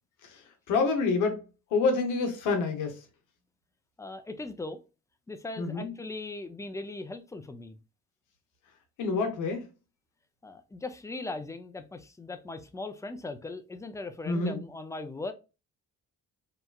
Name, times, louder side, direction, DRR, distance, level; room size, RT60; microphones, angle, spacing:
voice 1, 0.7-1.4 1.7-3.0 5.6-5.9 9.0-9.6 14.3-14.6, left 4 dB, 85° left, 0.8 m, -27 dB
voice 2, 4.0-4.8 5.3-7.8 10.4-15.3, left 2 dB, 10° left, 0.3 m, -39 dB
2.9 x 2.3 x 2.2 m
cardioid pair, 90°, 30 cm